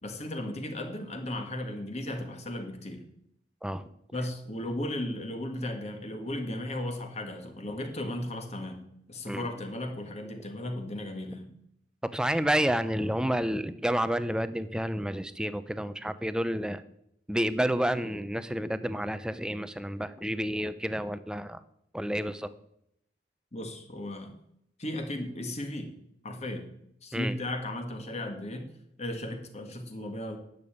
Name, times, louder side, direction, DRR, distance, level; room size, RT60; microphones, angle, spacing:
voice 1, 0.0-3.0 4.1-8.8 9.1-11.5 23.5-24.3 24.8-25.9 26.2-26.7 27.0-28.7 29.0-30.4, left 1 dB, 40° left, 5 dB, 1.7 m, -35 dB
voice 2, 12.0-16.8 17.3-21.6 21.9-22.5 27.1-27.4, equal, 5° right, 13 dB, 0.6 m, -30 dB
10.5 x 6.9 x 8.6 m, 0.74 s
head